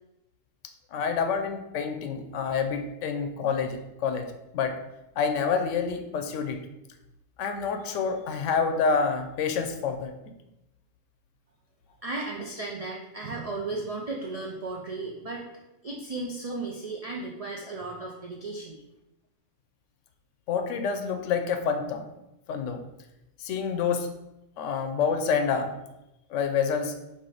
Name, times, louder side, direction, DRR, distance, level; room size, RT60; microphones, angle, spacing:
voice 1, 0.9-4.3 4.5-4.8 5.2-6.6 7.4-10.1 20.5-22.1 22.5-22.8 23.4-24.1 24.6-25.8 26.3-26.9, left 6 dB, 85° left, 6 dB, 0.9 m, -27 dB
voice 2, 12.0-18.8, right 3 dB, 55° right, -1 dB, 0.4 m, -35 dB
4.3 x 2.6 x 4.8 m, 0.92 s
omnidirectional pair, 1.2 m